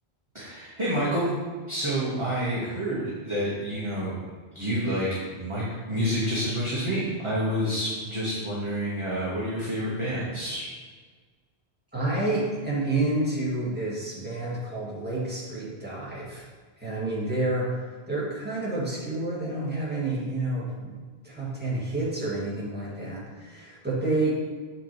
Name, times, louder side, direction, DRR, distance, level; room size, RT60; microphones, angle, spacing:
voice 1, 0.3-1.3 1.7-4.1 4.5-5.1 5.4-10.7, equal, 30° right, -7 dB, 1.2 m, -28 dB
voice 2, 11.9-16.5 16.8-21.0 21.2-24.3, right 2 dB, 10° right, -8 dB, 1.9 m, -29 dB
6.9 x 5.8 x 3.0 m, 1.5 s
omnidirectional pair, 1.1 m